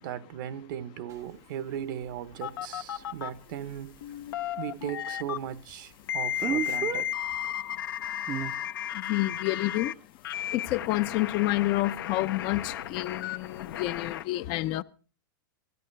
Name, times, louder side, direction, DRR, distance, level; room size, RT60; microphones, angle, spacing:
voice 1, 0.0-3.9 4.6-7.1, right 10 dB, 65° right, 1.0 m, -37 dB
Speech, 1.1-1.2 6.4-7.0 8.3-8.5, right 9 dB, 30° right, 0.6 m, -31 dB
sound 1, 2.4-3.3 4.0-5.4 6.1-9.9 10.2-14.2, left 11 dB, 85° left, 1.0 m, -34 dB
voice 2, 9.1-9.9 10.5-14.8, left 17 dB, 45° left, 0.6 m, -29 dB
17.5 x 13.5 x 3.3 m
supercardioid pair, 130°, 11 cm